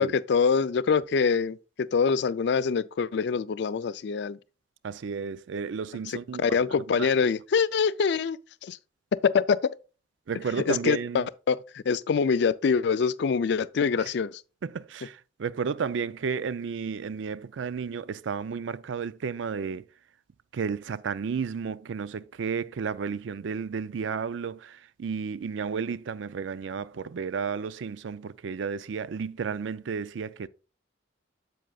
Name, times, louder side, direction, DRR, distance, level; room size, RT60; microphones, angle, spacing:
voice 1, 0.0-4.4 6.1-8.4 8.6-8.8 9.2-9.7 10.7-14.4, left 5 dB, 60° left, 0.3 m, -25 dB
voice 2, 4.8-6.4 6.9-7.1 10.3-11.3 14.6-19.8 20.5-30.5, right 6 dB, 70° right, 0.4 m, -32 dB
7.9 x 7.5 x 2.3 m
head